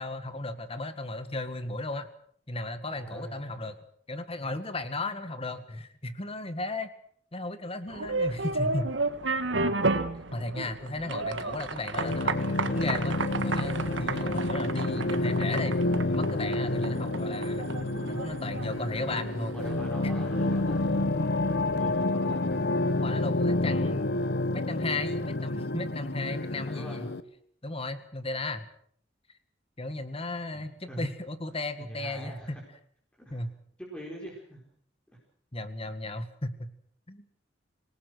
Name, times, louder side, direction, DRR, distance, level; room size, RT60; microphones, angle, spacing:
voice 1, 0.0-2.1 2.5-6.9 7.3-9.0 10.3-15.8 16.1-17.7 18.1-19.6 23.0-24.1 24.5-27.1 27.6-28.7 29.8-32.6 33.3-33.5 35.5-36.7 37.1-37.2, left 2 dB, 30° left, 11 dB, 1.8 m, -35 dB
voice 2, 2.9-3.4 19.4-22.5 26.7-27.0 30.5-31.1 31.8-32.6 33.2-33.5 33.8-34.6, right 1 dB, 5° left, -3 dB, 4.9 m, -42 dB
sound 1, 7.9-20.6, right 3 dB, 90° right, 1.7 m, -33 dB
sound 2, 12.0-27.2, left 2 dB, 60° left, 1.2 m, -29 dB
26.5 x 19.0 x 6.4 m, 0.62 s
head